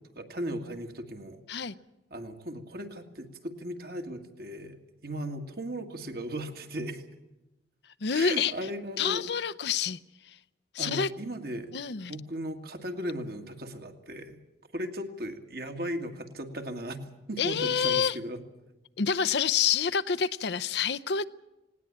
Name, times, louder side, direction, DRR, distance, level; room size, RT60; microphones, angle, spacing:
voice 1, 0.2-1.4 2.1-4.8 5.0-7.0 8.1-9.2 10.8-11.7 12.1-14.4 14.7-17.0 17.3-18.4, right 1 dB, 55° right, 2.1 m, -37 dB
voice 2, 8.0-8.5 9.0-10.0 10.2-10.4 10.7-11.1 11.7-12.1 17.4-18.2 19.0-21.2, left 7 dB, 70° left, 0.7 m, -27 dB
19.0 x 18.0 x 8.8 m
head